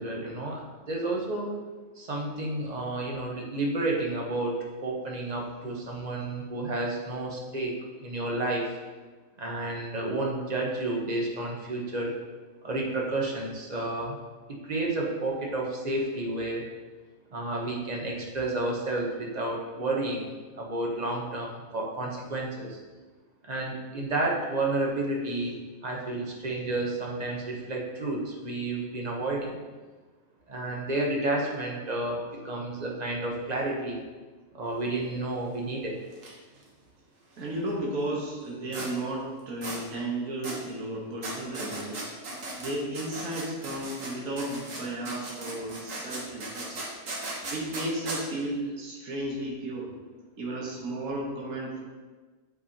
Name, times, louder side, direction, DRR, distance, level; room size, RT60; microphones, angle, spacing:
voice 1, 0.0-1.5 2.0-8.7 9.4-12.1 12.6-14.2 14.5-16.7 17.3-22.8 23.4-29.6 30.5-34.0 34.5-36.0, right 2 dB, 35° right, -1 dB, 1.0 m, -31 dB
sound 1, 36.1-36.3 36.5-36.6 38.7-38.9 39.6-39.8 40.4-40.6 41.2-44.1 44.4-48.2, right 2 dB, 65° right, 1.6 m, -37 dB
voice 2, 37.4-42.1 42.6-46.9 47.5-49.9 50.4-51.8, right 1 dB, 80° right, -4 dB, 1.7 m, -34 dB
8.0 x 4.9 x 2.8 m, 1.3 s
omnidirectional pair, 1.5 m